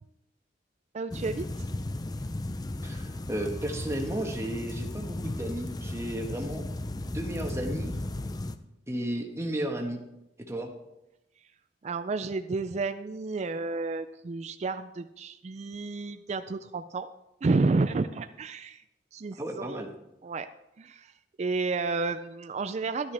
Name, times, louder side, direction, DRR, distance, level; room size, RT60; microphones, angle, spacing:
voice 1, 0.9-1.7 11.8-17.1 17.4-18.8 19.1-19.9 20.2-20.5 20.8-21.1 21.4-23.1, right 3 dB, 40° right, 9 dB, 0.4 m, -31 dB
sound 1, 1.1-8.6, left 1 dB, 20° left, 0.5 m, -35 dB
voice 2, 2.8-6.6 7.0-7.9 8.9-10.0 10.5-10.7 19.4-19.9, right 1 dB, 15° right, 2 dB, 1.3 m, -33 dB
12.5 x 10.5 x 3.4 m, 0.89 s
head